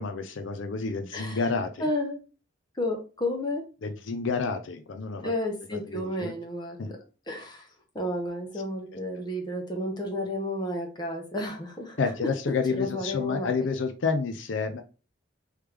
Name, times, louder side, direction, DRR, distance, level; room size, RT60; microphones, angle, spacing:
voice 1, 0.0-1.8 3.8-5.3 5.9-6.3 6.8-6.9 12.0-14.8, left 4 dB, 75° left, 8 dB, 0.5 m, -29 dB
voice 2, 1.1-1.5 1.8-2.2 2.7-3.6 5.2-7.0 7.3-7.7 7.9-12.1 12.7-13.5, left 1 dB, 20° left, 2 dB, 0.9 m, -32 dB
3.4 x 3.2 x 3.3 m, 0.35 s
head